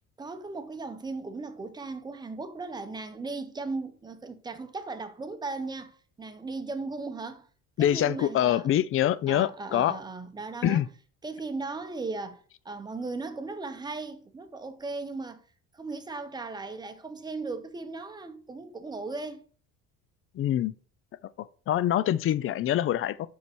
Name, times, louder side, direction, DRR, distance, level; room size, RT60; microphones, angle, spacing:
voice 1, 0.2-7.5 7.8-8.7 9.3-10.8 11.2-15.4 15.7-19.4, right 3 dB, 15° right, 0.8 m, -37 dB
voice 2, 7.8-10.0 10.6-10.9 20.4-20.7 21.7-23.3, left 11 dB, 40° left, 0.4 m, -25 dB
5.7 x 4.7 x 4.4 m
cardioid pair, 125°, 32 cm